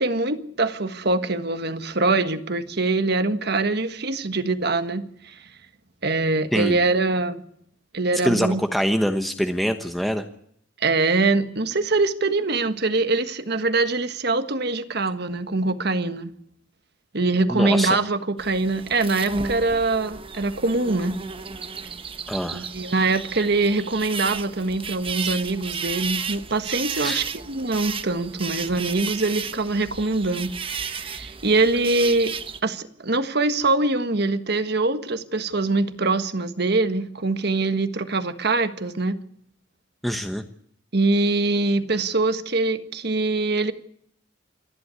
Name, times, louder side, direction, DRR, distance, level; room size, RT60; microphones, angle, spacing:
voice 1, 0.0-5.4 6.0-7.4 7.9-8.6 10.8-16.3 17.1-21.2 22.5-32.3 32.6-39.1 40.9-43.7, right 3 dB, 60° right, 1.6 m, -23 dB
voice 2, 8.2-10.2 17.5-18.0 22.3-22.7 27.0-27.2 40.0-40.4, equal, ahead, 1.1 m, -24 dB
sound 1, 18.4-32.6, right 5 dB, 30° right, 1.0 m, -33 dB
27.5 x 11.5 x 9.7 m
head